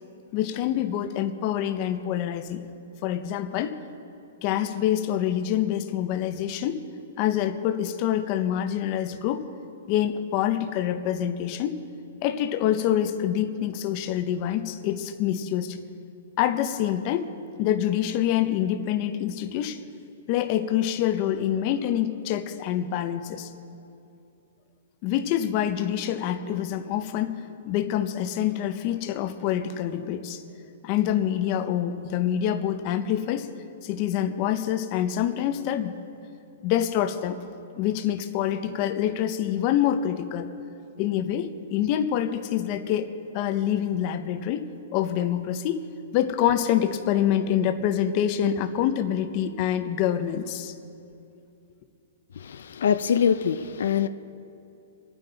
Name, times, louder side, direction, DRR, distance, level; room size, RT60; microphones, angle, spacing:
voice 1, 0.3-2.6 3.0-3.8 4.4-6.9 7.2-9.5 9.9-11.8 12.2-15.8 16.4-19.8 20.3-23.5 25.0-30.4 30.8-33.5 33.8-36.0 36.6-37.4 37.8-40.5 41.0-50.7, left 10 dB, 30° left, 0.7 m, -26 dB
voice 2, 52.4-54.1, left 7 dB, 70° left, 0.5 m, -24 dB
27.0 x 9.4 x 4.0 m
hypercardioid pair, 170°, 0 cm